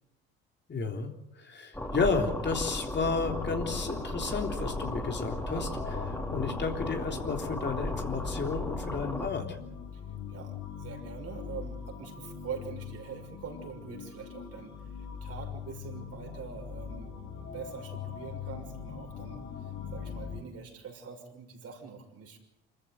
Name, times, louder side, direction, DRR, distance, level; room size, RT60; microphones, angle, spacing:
voice 1, 0.7-9.6, left 4 dB, 35° left, 4 dB, 3.5 m, -32 dB
sound 1, 1.7-9.3, left 1 dB, 10° left, 4.6 m, -36 dB
sound 2, 2.9-20.4, left 7 dB, 65° left, 4.3 m, -41 dB
voice 2, 10.3-22.4, right 6 dB, 50° right, 2 dB, 6.3 m, -44 dB
26.0 x 14.5 x 9.4 m, 0.84 s
hypercardioid pair, 65°, 30 cm